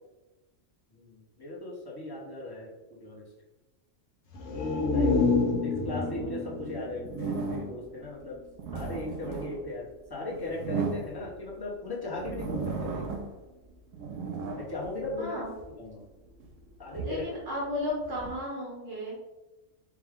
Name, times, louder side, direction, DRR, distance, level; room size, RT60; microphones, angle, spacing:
voice 1, 0.9-3.3 4.9-5.1 5.6-8.4 8.7-13.1 14.5-16.0 16.8-17.3, left 2 dB, 20° left, -5 dB, 0.8 m, -38 dB
sound 1, 4.3-8.0 8.4-8.5, left 3 dB, 65° left, 1.0 m, -28 dB
voice 2, 4.9-5.2 15.2-15.5 17.0-19.2, left 1 dB, 70° right, -4 dB, 1.3 m, -34 dB
sound 2, 7.0-7.9 8.4-11.6 12.1-13.4 13.8-15.7 16.3-18.4, right 4 dB, 85° right, 1.0 m, -36 dB
4.7 x 2.3 x 3.5 m, 1.1 s
omnidirectional pair, 1.3 m